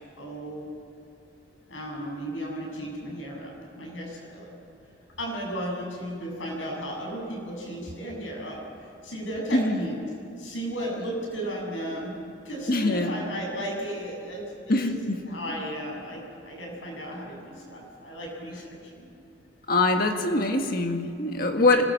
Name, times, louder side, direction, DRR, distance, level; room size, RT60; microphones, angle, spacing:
voice 1, 0.2-0.7 1.7-4.5 5.2-8.6 9.0-10.0 10.3-12.1 12.4-14.9 15.2-19.1, equal, 80° left, -1 dB, 7.6 m, -35 dB
voice 2, 9.5-9.9 12.7-13.1 14.7-15.3 19.7-21.9, left 2 dB, 50° left, 4 dB, 1.7 m, -23 dB
25.0 x 19.5 x 7.6 m, 2.4 s
head